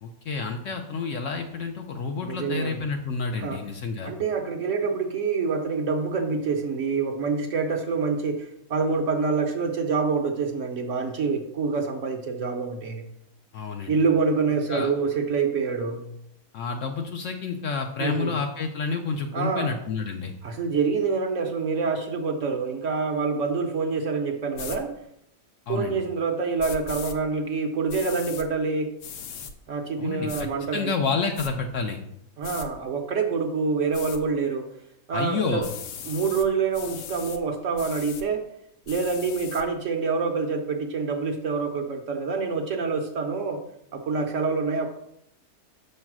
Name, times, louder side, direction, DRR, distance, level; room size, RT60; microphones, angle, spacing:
voice 1, 0.0-4.1 13.5-14.0 14.7-14.9 16.5-20.3 25.7-26.0 30.0-32.0 35.1-35.7, left 4 dB, 65° left, 4 dB, 0.8 m, -29 dB
voice 2, 2.2-2.8 3.4-3.6 4.0-13.0 13.9-16.0 18.0-18.3 19.3-19.7 20.4-24.9 25.7-28.9 29.7-30.9 32.4-34.7 35.1-35.7 36.1-38.4 38.9-43.6 43.9-44.9, right 4 dB, 60° right, 4 dB, 1.0 m, -26 dB
sound 1, 24.5-24.8 26.6-27.2 27.9-28.5 29.0-29.5 30.3-30.4 31.0-31.5 32.4-32.7 33.9-34.2 35.6-36.5 36.7-37.4 37.8-38.2 38.9-39.6, left 6 dB, 85° left, 1.2 m, -38 dB
6.8 x 3.2 x 5.9 m, 0.75 s
omnidirectional pair, 1.7 m